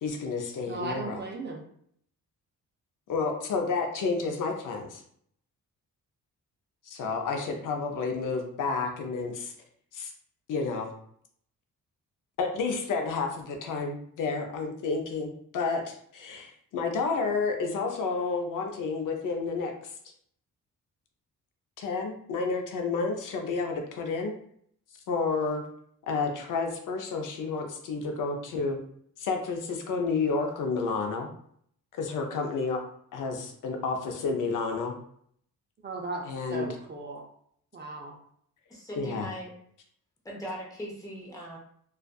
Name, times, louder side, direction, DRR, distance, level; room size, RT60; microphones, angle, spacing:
voice 1, 0.0-1.2 3.1-5.0 6.9-9.5 9.9-10.1 10.5-10.9 12.4-19.7 21.8-24.3 25.1-25.6 26.1-28.8 29.2-31.3 31.9-32.8 33.1-34.9 36.2-36.7 39.0-39.3, left 4 dB, 65° left, 3 dB, 0.5 m, -30 dB
voice 2, 0.7-1.6 35.8-36.2 36.5-37.2 37.7-38.1, right 3 dB, 35° right, 0 dB, 0.4 m, -36 dB
voice 3, 38.7-39.5 40.2-41.6, equal, 10° left, -3 dB, 0.8 m, -39 dB
2.5 x 2.3 x 2.2 m, 0.64 s
cardioid pair, 110°, 33 cm